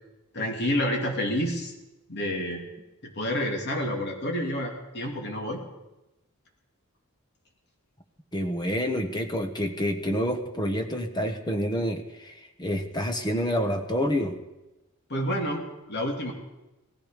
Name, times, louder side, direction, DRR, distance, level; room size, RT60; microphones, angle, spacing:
voice 1, 0.3-1.7 2.1-2.6 3.0-5.6 15.1-16.3, equal, 50° left, 1 dB, 2.7 m, -29 dB
voice 2, 8.3-14.4, equal, 20° left, 6 dB, 1.3 m, -28 dB
17.5 x 14.5 x 5.1 m, 1.0 s
head